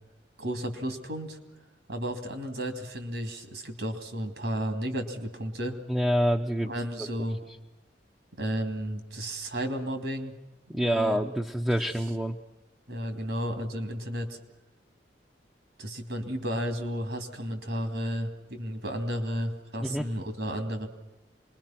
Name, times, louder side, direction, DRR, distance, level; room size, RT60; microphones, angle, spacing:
voice 1, 0.4-1.4 1.9-5.8 6.7-7.4 8.3-10.4 10.8-11.2 11.8-11.9 12.9-14.4 15.8-20.9, equal, 70° right, 7 dB, 2.8 m, -33 dB
voice 2, 5.9-6.7 10.7-12.4 19.8-20.1, equal, 5° right, 1 dB, 0.7 m, -26 dB
26.0 x 21.0 x 5.9 m, 1.1 s
head